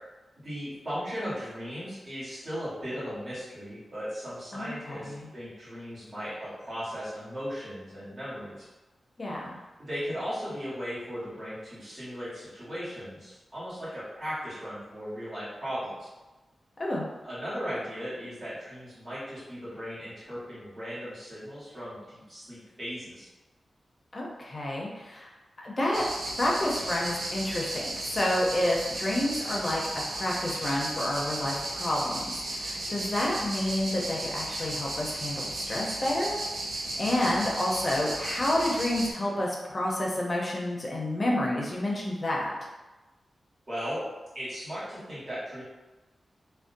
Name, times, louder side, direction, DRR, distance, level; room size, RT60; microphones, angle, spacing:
voice 1, 0.4-8.7 9.8-16.1 17.2-23.3 43.7-44.0 44.3-45.6, equal, 40° right, -12 dB, 1.2 m, -37 dB
voice 2, 4.5-5.2 9.2-9.6 16.8-17.1 24.1-25.3 25.6-26.1 26.4-29.8 30.1-36.4 37.0-42.5, left 1 dB, 40° left, -3 dB, 0.5 m, -29 dB
sound 1, 25.9-39.1, right 1 dB, 65° right, 0.4 m, -35 dB
2.5 x 2.1 x 2.5 m, 1.1 s
wide cardioid pair, 85°, 0 cm